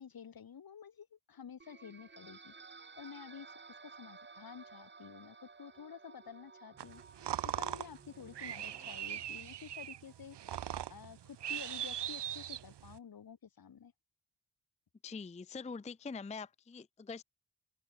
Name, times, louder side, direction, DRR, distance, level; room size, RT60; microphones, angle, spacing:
voice 1, 0.0-2.5 3.0-7.0 7.4-10.6 10.9-13.9, left 7 dB, 55° left, 1.2 m, -51 dB
sound 1, 1.6-9.2, right 4 dB, 25° right, 0.9 m, -55 dB
sound 2, 6.8-13.0, right 11 dB, 75° right, 0.7 m, -40 dB
voice 2, 15.0-17.2, left 4 dB, 15° left, 0.4 m, -44 dB
open air
wide cardioid pair, 135°, 42 cm